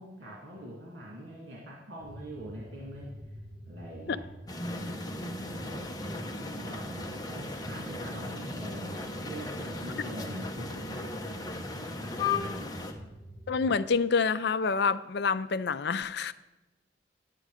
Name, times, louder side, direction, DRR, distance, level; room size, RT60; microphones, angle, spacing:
voice 1, 0.0-3.1 3.7-4.2 4.8-13.1, equal, 80° right, -5 dB, 2.5 m, -44 dB
sound 1, 2.0-13.8, equal, ahead, 1.3 m, -47 dB
sound 2, 4.5-12.9, left 3 dB, 20° left, 1.0 m, -36 dB
voice 2, 13.5-16.3, left 5 dB, 60° left, 14 dB, 0.5 m, -27 dB
10.5 x 9.2 x 4.9 m, 1.0 s
head